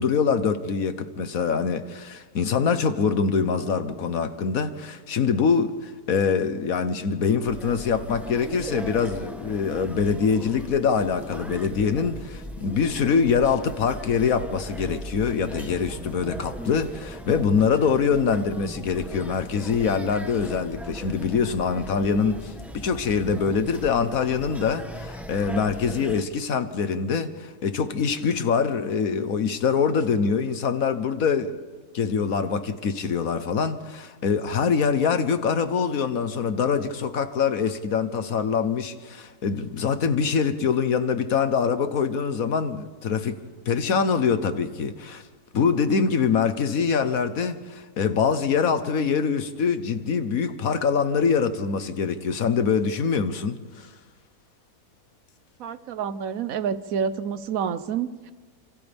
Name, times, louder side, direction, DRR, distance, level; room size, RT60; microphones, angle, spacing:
voice 1, 0.0-31.6 31.9-43.4 43.7-45.2 45.5-53.9, left 6 dB, 65° left, 1.4 m, -24 dB
sound 1, 7.4-26.2, equal, ahead, 0.9 m, -39 dB
voice 2, 55.6-58.3, right 7 dB, 65° right, 1.2 m, -28 dB
28.5 x 27.0 x 3.5 m
omnidirectional pair, 1.6 m